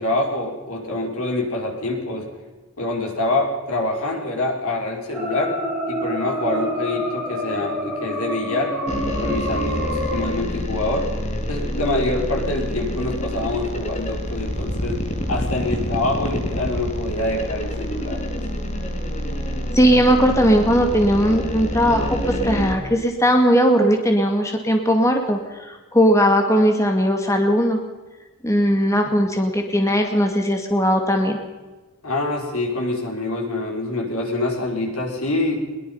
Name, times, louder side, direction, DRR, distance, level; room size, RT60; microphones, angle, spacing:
voice 1, 0.0-2.3 2.8-5.6 5.9-8.8 9.2-11.1 11.5-15.0 15.3-18.5 32.0-35.6, left 2 dB, 85° left, 1 dB, 5.5 m, -25 dB
sound 1, 5.1-10.3, equal, 5° right, 5.6 m, -27 dB
sound 2, 8.9-22.8, equal, 30° left, 2.4 m, -27 dB
voice 2, 19.7-27.8 28.4-31.4, equal, 15° left, 3 dB, 2.2 m, -18 dB
22.0 x 21.5 x 5.7 m, 1.2 s
head